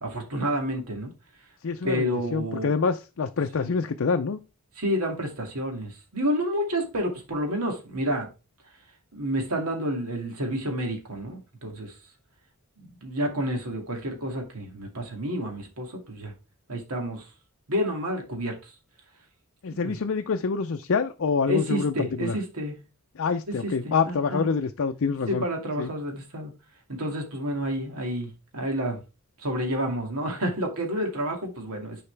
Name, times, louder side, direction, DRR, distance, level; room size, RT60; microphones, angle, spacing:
voice 1, 0.0-1.1 1.8-2.7 3.6-3.7 4.8-8.3 9.1-11.9 12.8-16.3 16.7-17.3 17.7-18.7 19.7-20.0 21.5-22.8 23.6-24.5 25.3-26.5 26.9-29.0 29.4-32.0, equal, 80° right, 2.3 m, -29 dB
voice 2, 1.6-4.4 19.6-22.4 23.2-25.5 25.8-25.9, left 5 dB, 60° left, 0.5 m, -26 dB
9.9 x 4.8 x 3.3 m
head